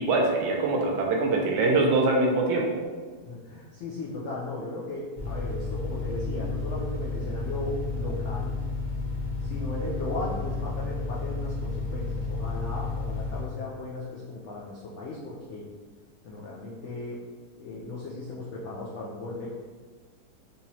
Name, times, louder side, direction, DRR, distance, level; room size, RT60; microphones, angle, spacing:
voice 1, 0.0-2.8, right 2 dB, 80° right, 0 dB, 1.2 m, -23 dB
voice 2, 3.2-8.6 9.4-15.7 16.2-17.2 17.6-19.5, left 2 dB, 85° left, -5 dB, 0.6 m, -36 dB
sound 1, 5.1-13.4, left 3 dB, 10° right, 1.3 m, -32 dB
3.8 x 2.9 x 2.8 m, 1.5 s
omnidirectional pair, 1.9 m